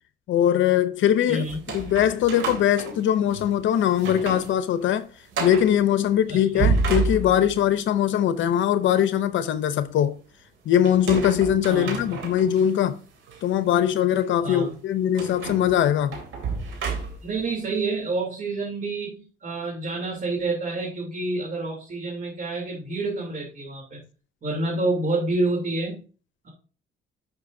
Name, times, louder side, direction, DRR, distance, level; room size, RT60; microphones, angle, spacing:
voice 1, 0.3-1.5 1.7-5.1 5.4-10.2 10.7-13.0 13.4-16.2, left 10 dB, 75° left, 0.7 m, -21 dB
voice 2, 1.3-1.6 6.3-6.7 11.7-12.2 14.4-14.7 17.2-24.0 24.4-26.0 26.4-26.5, right 2 dB, 45° right, 3.1 m, -28 dB
sound 1, 1.4-3.5 3.9-4.5 4.8-4.9 5.3-5.7 6.4-7.7 10.8-12.6 13.3-13.4 15.2-17.4, right 4 dB, 80° right, 2.9 m, -29 dB
12.0 x 5.9 x 2.7 m
cardioid pair, 90°, 20 cm